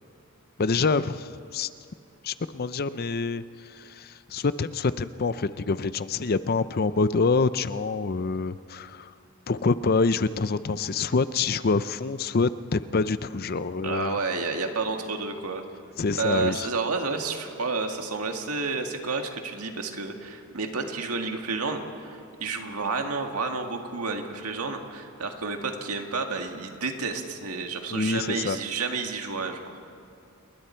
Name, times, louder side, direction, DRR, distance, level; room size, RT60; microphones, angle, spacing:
voice 1, 0.6-1.7 2.2-3.4 3.7-9.1 9.5-14.2 16.0-16.7 27.9-28.6, left 4 dB, 45° left, 14 dB, 0.5 m, -26 dB
voice 2, 13.8-15.6 16.2-29.7, right 4 dB, 85° right, 4 dB, 1.9 m, -30 dB
30.0 x 20.5 x 4.5 m, 2.5 s
head